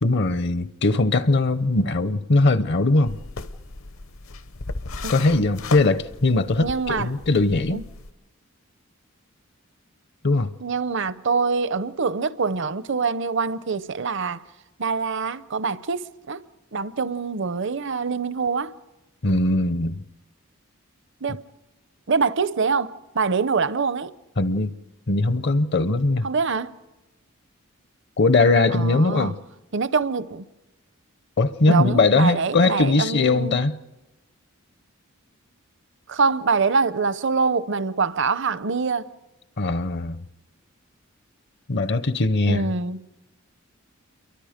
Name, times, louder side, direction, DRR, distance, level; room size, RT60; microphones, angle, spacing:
voice 1, 0.0-3.2 5.1-7.8 10.2-10.5 19.2-19.9 24.4-24.8 25.1-26.3 28.2-29.4 31.4-33.8 39.6-40.2 41.7-42.7, left 2 dB, 50° left, 0.7 m, -20 dB
sound 1, 3.1-8.1, left 3 dB, 70° left, 1.0 m, -36 dB
voice 2, 6.6-7.1 7.7-7.8 10.6-14.4 14.8-16.4 16.7-18.7 21.2-21.4 22.1-24.1 26.2-26.7 28.7-29.4 29.7-30.5 31.7-33.6 36.1-39.1 42.5-43.0, right 4 dB, 55° right, 0.7 m, -24 dB
28.5 x 23.5 x 5.1 m
head